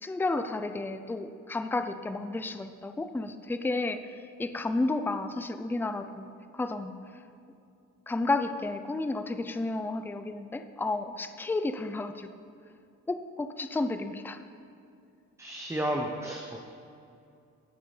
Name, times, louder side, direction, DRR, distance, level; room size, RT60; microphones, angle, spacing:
voice 1, 0.0-4.0 4.4-6.9 8.1-12.3 13.1-14.4, left 2 dB, 5° left, 9 dB, 0.4 m, -32 dB
voice 2, 15.4-16.6, right 1 dB, 10° right, 1 dB, 0.8 m, -32 dB
18.0 x 6.6 x 3.3 m, 2.6 s
cardioid pair, 90°, 30 cm